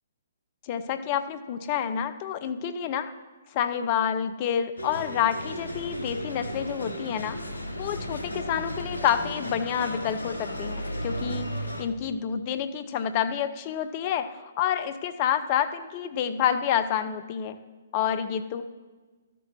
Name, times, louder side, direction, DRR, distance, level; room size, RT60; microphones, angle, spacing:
voice 1, 0.6-3.1 3.5-7.4 7.8-11.5 11.8-17.6 17.9-18.6, left 9 dB, 35° left, 9 dB, 0.8 m, -28 dB
Douz street, 4.8-11.9, equal, 85° left, 1.4 m, -35 dB
12.5 x 6.9 x 7.5 m, 1.3 s
figure-of-eight pair, 130°, 0 cm